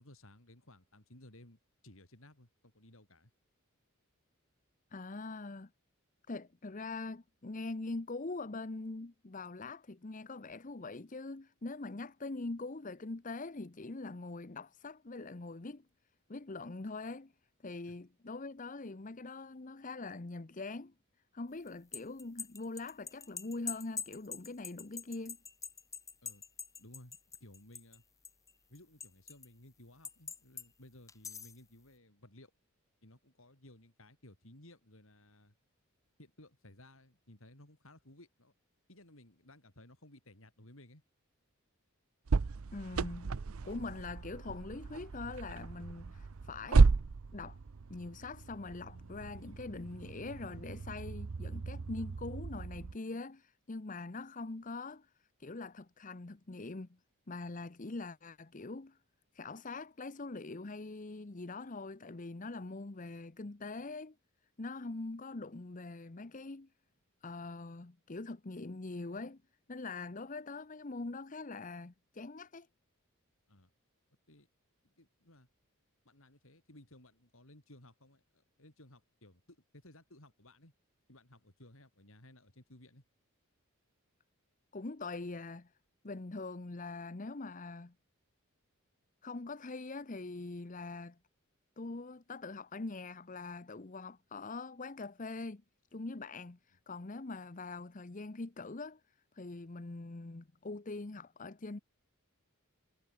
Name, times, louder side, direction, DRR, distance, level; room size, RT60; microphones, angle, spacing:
voice 1, 0.0-3.3 17.9-18.0 26.2-26.4 26.8-28.0 28.7-32.5 33.0-35.5 36.2-38.5 38.9-41.0 73.5-73.7 74.3-74.5 74.8-75.5 76.0-80.7 81.1-83.0, left 1 dB, 65° left, 5.4 m, -58 dB
voice 2, 4.9-5.7 6.3-15.8 16.3-17.3 17.6-20.9 21.3-25.4 42.7-43.3 43.6-46.9 47.3-47.6 47.9-55.1 55.4-56.9 57.3-59.0 59.3-64.1 64.6-66.7 67.2-69.4 69.7-72.7 84.7-85.7 86.0-87.9 89.2-91.2 91.8-95.6 95.9-99.0 99.3-101.8, left 3 dB, 35° left, 0.8 m, -43 dB
sound 1, 21.7-28.0 28.3-29.5 30.1-30.7 31.1-31.6, left 6 dB, 15° left, 1.1 m, -44 dB
sound 2, 42.3-52.9, right 4 dB, 75° right, 0.6 m, -33 dB
head